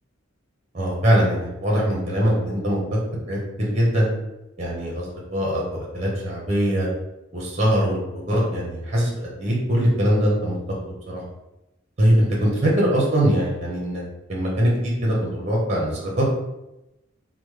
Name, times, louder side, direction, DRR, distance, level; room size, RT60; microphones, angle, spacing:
voice 1, 0.7-3.0 3.3-4.1 4.6-6.9 7.3-10.5 10.8-11.2 12.0-14.0 14.3-16.2, equal, 35° right, -3 dB, 0.7 m, -22 dB
3.1 x 2.0 x 3.1 m, 0.94 s
head